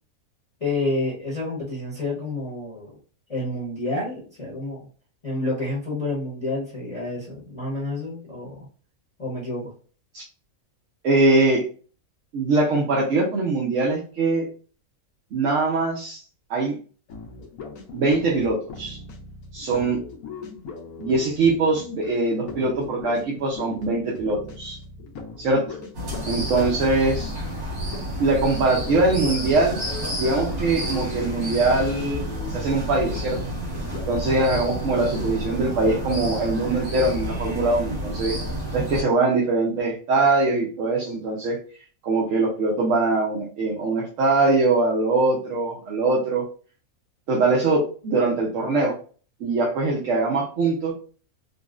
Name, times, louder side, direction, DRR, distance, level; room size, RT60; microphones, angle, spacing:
voice 1, 0.6-2.9 3.3-4.9 5.2-8.6 9.2-9.7, left 2 dB, 30° left, -6 dB, 0.9 m, -29 dB
voice 2, 11.0-11.6 12.3-14.5 15.3-16.2 16.5-16.8 17.9-19.0 19.5-20.0 21.0-24.8 25.4-25.7 26.3-27.3 28.2-29.8 30.2-33.4 34.1-38.4 38.7-41.6 42.0-46.4 47.3-48.9 49.4-50.9, right 3 dB, 65° right, -3 dB, 1.0 m, -22 dB
sound 1, 17.1-34.8, left 4 dB, 85° left, 1.1 m, -39 dB
sound 2, 25.9-39.0, equal, 85° right, 1.8 m, -30 dB
3.8 x 2.0 x 2.4 m, 0.40 s
omnidirectional pair, 1.5 m